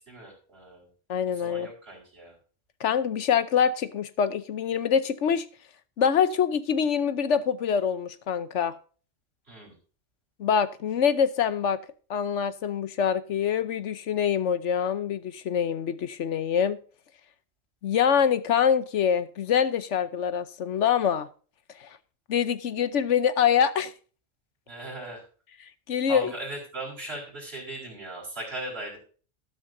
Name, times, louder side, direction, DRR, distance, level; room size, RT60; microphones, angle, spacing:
voice 1, 0.1-0.9 1.3-2.4 9.5-9.7 24.7-25.2 26.1-29.0, right 2 dB, 55° right, -3 dB, 4.7 m, -38 dB
voice 2, 1.1-1.7 2.8-5.5 6.0-8.7 10.4-11.8 12.1-16.8 17.8-21.3 21.8-22.0 22.3-23.9 25.9-26.3, left 7 dB, 70° left, 13 dB, 1.1 m, -25 dB
13.0 x 12.0 x 2.7 m, 0.39 s
omnidirectional pair, 1.3 m